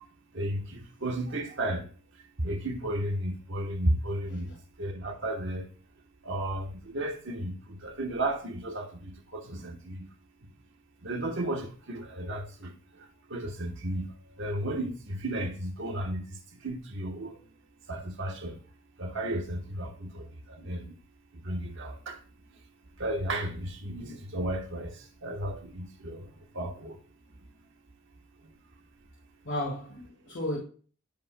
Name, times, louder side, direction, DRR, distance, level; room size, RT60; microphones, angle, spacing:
voice 1, 0.3-1.9 2.4-4.5 4.8-5.6 6.2-10.0 11.0-12.7 13.3-14.1 14.4-16.2 16.6-17.4 17.9-18.5 19.0-20.9 21.3-22.2 23.0-26.3 26.5-27.0, right 1 dB, 60° right, 1.1 m, -33 dB
voice 2, 29.4-30.6, left 1 dB, 55° left, 1.9 m, -33 dB
15.5 x 5.2 x 2.2 m
head